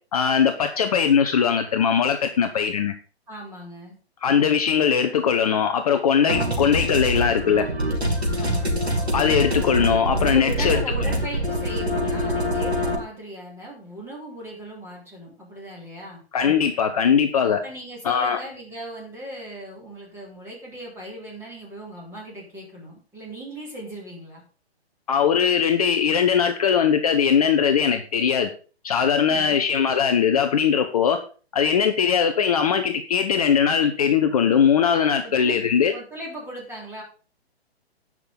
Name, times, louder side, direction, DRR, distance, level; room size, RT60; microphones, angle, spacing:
voice 1, 0.1-2.9 4.2-7.7 9.1-10.8 16.3-17.6 18.0-18.4 25.1-28.5 28.8-31.2 31.5-35.9, left 7 dB, 35° left, 7 dB, 0.8 m, -20 dB
voice 2, 3.3-4.0 8.4-8.7 10.3-16.2 17.6-24.4 29.2-29.7 35.2-35.6 35.9-37.0, right 1 dB, 10° right, -3 dB, 3.7 m, -38 dB
sound 1, 6.3-12.9, equal, 80° right, 3.3 m, -24 dB
17.5 x 6.1 x 4.0 m, 0.38 s
figure-of-eight pair, 130°, 32 cm